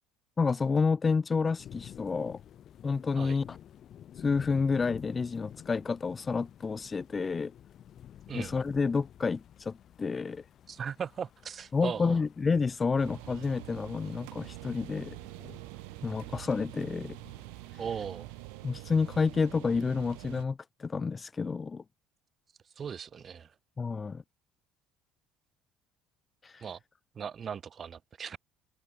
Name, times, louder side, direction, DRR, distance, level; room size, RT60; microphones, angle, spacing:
voice 1, 0.4-2.4 2.8-3.6 4.1-7.5 8.3-10.5 11.7-15.2 16.0-17.2 17.7-17.8 18.6-21.8 23.8-24.2 26.4-26.6, left 4 dB, 25° left, 1.2 m, -29 dB
sound 1, 1.6-18.8, left 10 dB, 50° left, 4.7 m, -52 dB
voice 2, 10.7-12.2 17.8-18.3 22.8-23.5 26.6-26.8 27.1-28.4, right 7 dB, 40° right, 1.8 m, -38 dB
sound 2, 13.0-20.4, right 40 dB or more, 80° right, 1.9 m, -45 dB
supercardioid pair, 85°, 0 cm